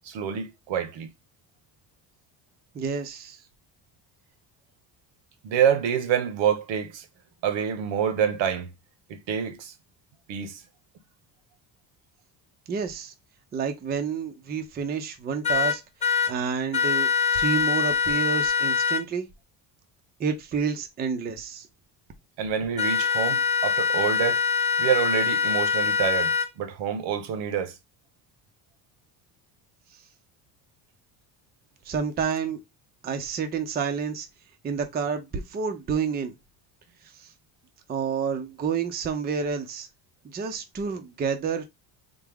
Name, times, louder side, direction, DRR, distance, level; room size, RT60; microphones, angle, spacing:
voice 1, 0.0-1.1 5.4-7.0 7.4-8.7 9.1-9.7 10.3-10.6 22.4-24.4 24.8-27.8, right 8 dB, 75° right, 0.9 m, -27 dB
voice 2, 2.7-3.4 12.7-13.1 13.5-15.8 16.1-19.3 20.2-21.7 31.9-32.6 33.0-34.3 34.6-36.3 37.2-37.3 37.9-39.9 40.2-41.6, right 6 dB, 20° right, 0.4 m, -29 dB
sound 1, 15.4-16.3 16.7-19.0 22.8-26.5, left 6 dB, 15° left, 1.0 m, -24 dB
3.5 x 2.0 x 3.4 m
cardioid pair, 125°, 45 cm